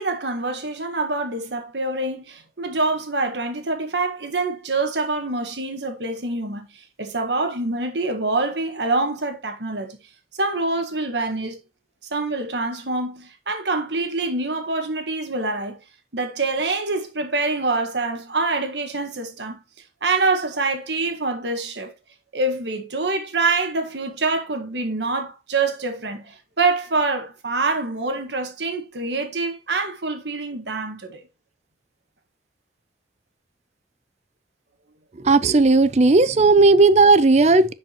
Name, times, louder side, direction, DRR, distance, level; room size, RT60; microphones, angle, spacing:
voice 1, 0.0-10.0 10.3-11.6 12.1-15.8 16.1-19.6 20.0-21.9 22.3-31.2, right 3 dB, 85° right, 1.7 m, -25 dB
voice 2, 35.2-37.7, right 3 dB, 40° right, 0.5 m, -15 dB
10.0 x 5.1 x 3.0 m
head